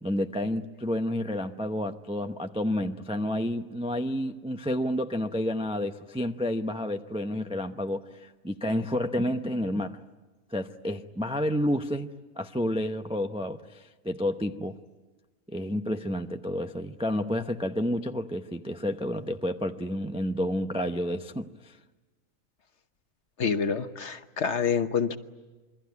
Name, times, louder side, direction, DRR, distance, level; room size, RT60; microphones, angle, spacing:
voice 1, 0.0-10.0 10.5-12.1 12.4-14.8 15.5-21.8, left 1 dB, 5° right, 0.4 m, -30 dB
voice 2, 23.4-25.2, left 6 dB, 50° left, 1.3 m, -27 dB
27.5 x 23.0 x 9.6 m
omnidirectional pair, 1.6 m